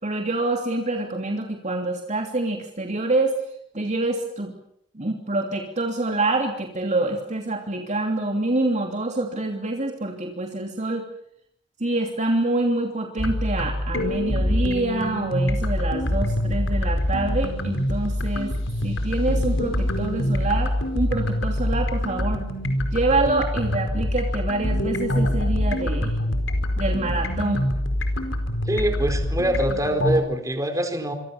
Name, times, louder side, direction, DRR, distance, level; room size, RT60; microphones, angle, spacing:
voice 1, 0.0-3.4 3.7-4.5 4.9-11.1 11.8-18.5 18.8-22.4 22.9-26.2 26.8-27.6, right 2 dB, 40° right, 3 dB, 3.0 m, -26 dB
sound 1, 13.2-30.2, left 1 dB, 85° left, 4.7 m, -25 dB
voice 2, 28.7-31.1, right 1 dB, 20° right, 6 dB, 4.4 m, -24 dB
27.0 x 25.0 x 7.2 m, 0.73 s
head